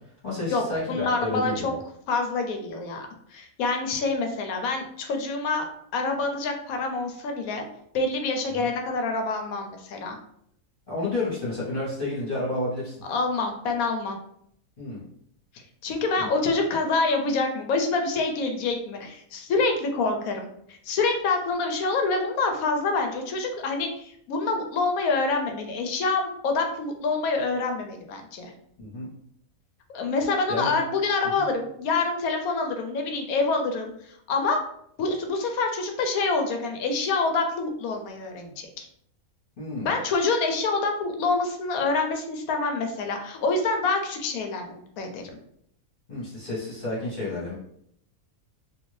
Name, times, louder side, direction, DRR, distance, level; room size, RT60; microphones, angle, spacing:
voice 1, 0.2-1.8 8.5-8.7 10.9-13.0 14.8-15.0 16.2-16.3 28.8-29.1 30.5-30.7 31.3-31.5 39.6-39.9 46.1-47.5, left 2 dB, 40° left, -9 dB, 1.3 m, -30 dB
voice 2, 0.9-1.7 2.1-5.7 5.9-7.6 7.9-10.2 13.1-14.2 15.8-28.5 29.9-33.9 34.3-34.6 35.0-38.9 39.8-45.2, left 3 dB, 80° left, 4 dB, 1.0 m, -26 dB
2.7 x 2.6 x 3.1 m, 0.70 s
omnidirectional pair, 1.5 m